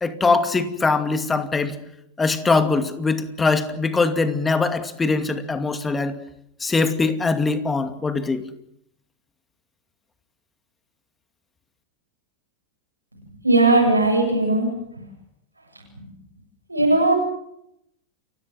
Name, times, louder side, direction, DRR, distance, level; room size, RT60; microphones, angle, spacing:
voice 1, 0.0-1.8 2.2-6.1 6.6-8.4, left 3 dB, 15° left, 9 dB, 2.4 m, -22 dB
voice 2, 13.4-14.7 16.7-17.1, right 2 dB, 85° right, 1 dB, 7.8 m, -17 dB
29.0 x 16.5 x 7.7 m, 0.77 s
figure-of-eight pair, 90°, 0 cm